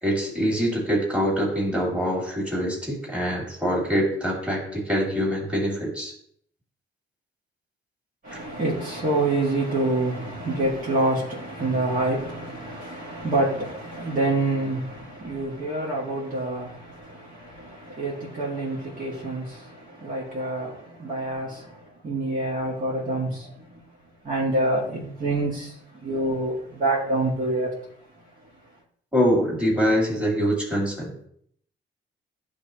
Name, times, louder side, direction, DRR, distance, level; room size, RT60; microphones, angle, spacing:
voice 1, 0.0-6.1 8.3-8.4 29.1-31.3, equal, 5° right, 2.6 m, -24 dB
voice 2, 8.2-23.8 24.2-27.9, right 2 dB, 45° right, 1.9 m, -27 dB
10.5 x 3.6 x 2.9 m
cardioid pair, 90°, 20 cm